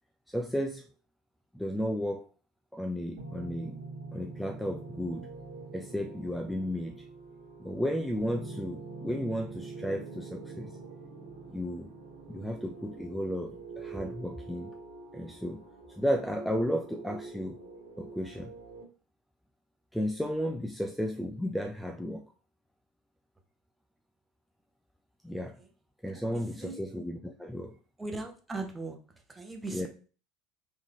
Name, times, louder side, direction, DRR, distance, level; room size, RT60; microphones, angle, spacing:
voice 1, 0.3-0.8 1.5-2.3 2.7-3.8 4.1-5.3 5.7-7.0 7.6-10.8 11.5-11.9 12.3-14.7 15.1-15.6 16.0-17.6 18.0-18.5 19.9-22.2 25.2-25.6 26.0-27.8 29.7-29.9, equal, ahead, 5 dB, 0.4 m, -33 dB
sound 1, 3.2-18.8, right 3 dB, 70° right, 1.6 m, -45 dB
voice 2, 26.1-26.8 28.0-29.0 29.3-29.9, right 3 dB, 15° right, 4 dB, 0.9 m, -39 dB
3.6 x 3.2 x 3.5 m, 0.37 s
figure-of-eight pair, 70°, 0 cm